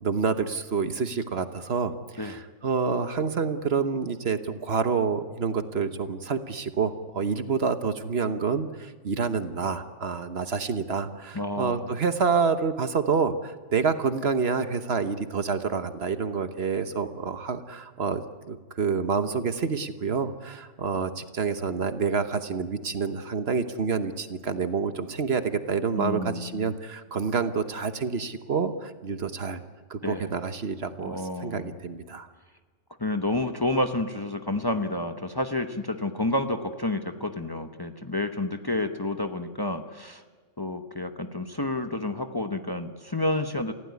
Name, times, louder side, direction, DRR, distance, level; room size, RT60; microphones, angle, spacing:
voice 1, 0.0-18.2 18.5-29.6 29.9-32.3, right 5 dB, 60° right, 10 dB, 1.3 m, -28 dB
voice 2, 11.3-11.9 26.0-26.7 30.0-30.3 31.0-31.8 33.0-40.2 40.6-43.7, left 2 dB, 20° left, 6 dB, 1.0 m, -29 dB
28.5 x 16.0 x 9.5 m, 1.4 s
omnidirectional pair, 1.2 m